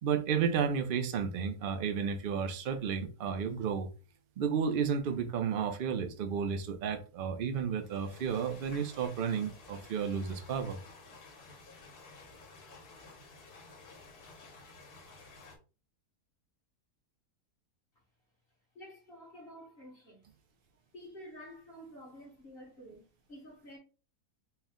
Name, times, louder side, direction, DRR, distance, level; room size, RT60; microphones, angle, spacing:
voice 1, 0.0-3.9 4.4-10.8, right 7 dB, 70° right, 0.5 m, -32 dB
sound 1, 7.8-15.6, left 3 dB, 75° left, 1.7 m, -53 dB
voice 2, 18.7-20.2 20.9-23.8, equal, 40° left, 1.4 m, -50 dB
4.5 x 2.2 x 3.6 m
omnidirectional pair, 1.7 m